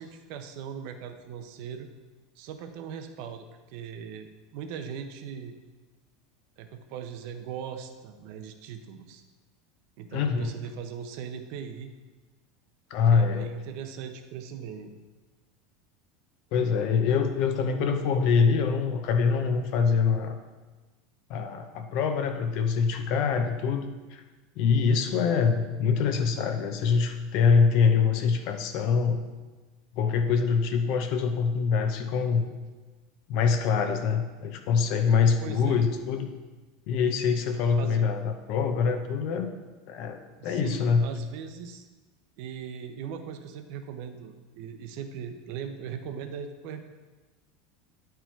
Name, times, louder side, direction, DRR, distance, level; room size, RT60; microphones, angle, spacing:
voice 1, 0.0-1.9 2.4-5.5 6.6-9.2 10.0-11.9 13.1-14.9 35.4-35.8 37.8-38.1 40.4-41.9 42.4-46.8, right 7 dB, 50° right, 7 dB, 0.7 m, -39 dB
voice 2, 10.1-10.5 12.9-13.5 16.5-20.4 21.3-24.2 24.6-29.2 29.9-32.4 33.3-36.3 36.9-39.5 39.9-41.1, left 5 dB, 45° left, 6 dB, 0.7 m, -24 dB
9.8 x 4.5 x 4.5 m, 1.3 s
supercardioid pair, 170°, 0 cm